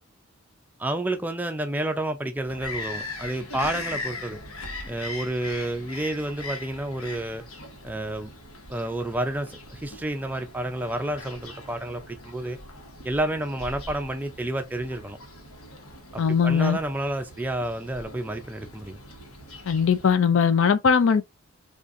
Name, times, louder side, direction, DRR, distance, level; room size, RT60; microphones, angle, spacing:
voice 1, 0.8-4.4 4.9-7.4 7.8-8.3 8.7-12.6 13.0-15.2 16.1-19.0, right 1 dB, 10° right, 0.4 m, -30 dB
Bird vocalization bird call bird song, 2.5-20.1, left 2 dB, 90° left, 1.1 m, -40 dB
voice 2, 16.2-16.8 19.7-21.2, left 6 dB, 65° left, 0.4 m, -20 dB
3.7 x 2.4 x 2.5 m
head